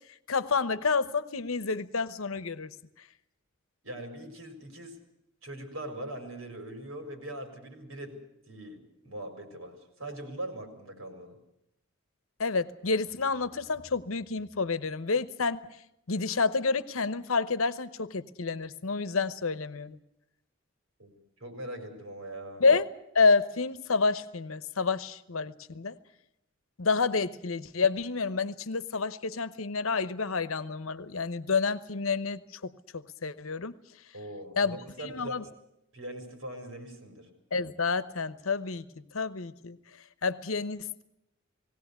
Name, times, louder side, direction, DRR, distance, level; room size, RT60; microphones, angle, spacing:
voice 1, 0.3-2.7 12.4-15.7 16.1-20.0 22.6-22.8 23.1-26.0 26.8-33.7 34.6-34.8 35.0-35.4 37.5-38.8 39.1-39.8 40.2-41.0, left 4 dB, 90° left, 14 dB, 1.0 m, -29 dB
voice 2, 3.8-5.0 5.4-8.2 8.5-11.4 21.0-21.1 21.4-22.6 34.1-35.4 35.9-37.3, right 1 dB, 90° right, 5 dB, 4.6 m, -41 dB
19.5 x 17.5 x 8.2 m, 0.83 s
head